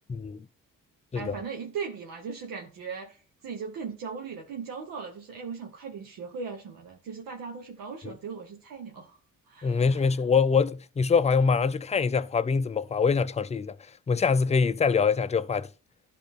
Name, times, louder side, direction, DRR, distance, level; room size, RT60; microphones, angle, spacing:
voice 1, 0.1-0.4 1.1-1.3 8.0-8.1 9.6-13.8 14.1-15.7, left 5 dB, 20° left, 0.4 m, -24 dB
voice 2, 1.1-9.2 9.5-10.2, right 5 dB, 85° right, 1.2 m, -38 dB
11.5 x 3.9 x 3.7 m
cardioid pair, 70°, 33 cm